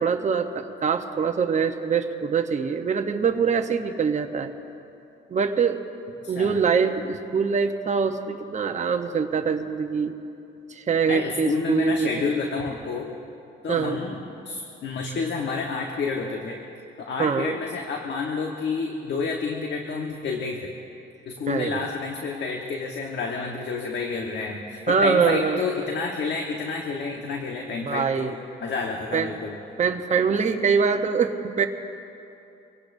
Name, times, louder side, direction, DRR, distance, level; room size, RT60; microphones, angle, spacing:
voice 1, 0.0-4.5 5.3-5.8 6.3-10.1 10.7-12.1 13.7-14.0 17.2-17.6 21.5-21.8 24.9-25.6 27.8-28.3 29.1-29.4 29.8-31.7, right 5 dB, 35° right, 5 dB, 0.9 m, -24 dB
voice 2, 6.2-6.6 11.1-13.1 13.6-16.6 17.0-20.7 21.3-28.3 28.6-29.6, left 4 dB, 60° left, 1 dB, 1.3 m, -29 dB
25.0 x 17.0 x 2.7 m, 2.8 s
cardioid pair, 90°, 20 cm